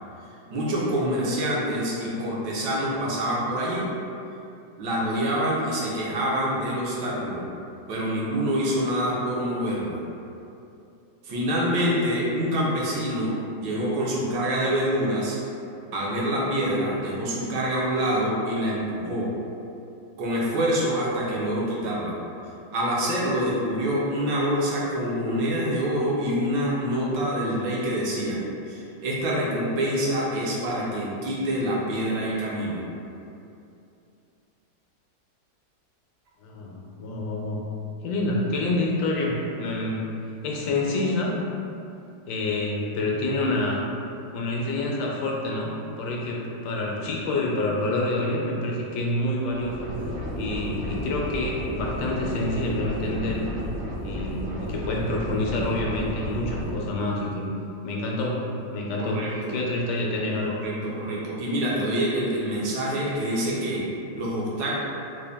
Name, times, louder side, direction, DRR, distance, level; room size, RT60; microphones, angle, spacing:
voice 1, 0.5-3.9 4.8-7.4 7.9-10.0 11.2-15.4 15.9-19.3 20.2-22.2 22.7-28.4 28.7-32.8 59.0-59.5 60.6-63.8 64.1-64.7, equal, 75° right, -5 dB, 1.3 m, -26 dB
voice 2, 36.4-37.6 38.0-40.1 40.4-41.4 42.3-43.8 44.3-50.1 50.4-53.7 54.0-57.5 57.8-60.5, left 2 dB, 75° left, -2 dB, 1.1 m, -27 dB
sound 1, 49.5-56.7, equal, 55° right, 0.6 m, -32 dB
3.8 x 2.1 x 3.4 m, 2.7 s
omnidirectional pair, 2.0 m